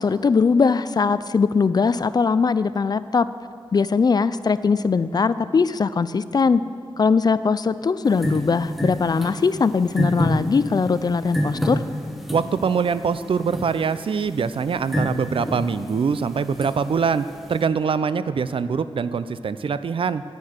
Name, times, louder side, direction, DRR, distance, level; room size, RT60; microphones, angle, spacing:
voice 1, 0.0-3.3 3.7-6.6 7.0-11.8, left 5 dB, 45° left, 15 dB, 0.3 m, -20 dB
sound 1, 8.1-17.7, equal, ahead, 1.1 m, -30 dB
voice 2, 12.3-20.2, right 6 dB, 65° right, 14 dB, 0.4 m, -23 dB
9.7 x 9.3 x 6.5 m, 2.1 s
wide cardioid pair, 120°, 10 cm